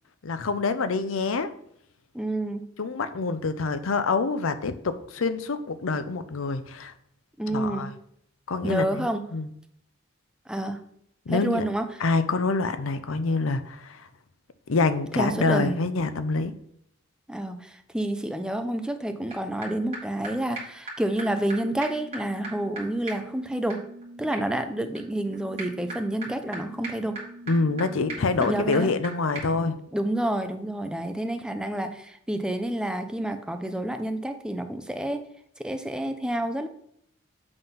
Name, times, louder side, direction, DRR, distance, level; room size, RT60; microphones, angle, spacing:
voice 1, 0.2-1.5 2.8-6.9 7.5-7.9 8.5-9.5 11.3-11.6 12.0-14.1 14.7-16.5 27.5-29.8, left 3 dB, 75° left, 11 dB, 0.6 m, -26 dB
voice 2, 2.1-2.6 7.4-7.9 8.6-9.2 10.5-10.8 11.3-12.0 15.2-15.7 17.3-23.8 24.2-27.2 28.4-28.9 29.9-35.2 35.6-36.7, right 1 dB, 5° right, 7 dB, 0.5 m, -29 dB
sound 1, 19.3-19.4 19.6-19.7 19.9-20.0 20.2-20.3 20.6-20.7 20.9-21.0 21.2-21.3 21.5-21.6 21.8-29.1 29.4-29.5, right 2 dB, 30° right, 2.1 m, -39 dB
7.9 x 3.7 x 5.6 m, 0.70 s
head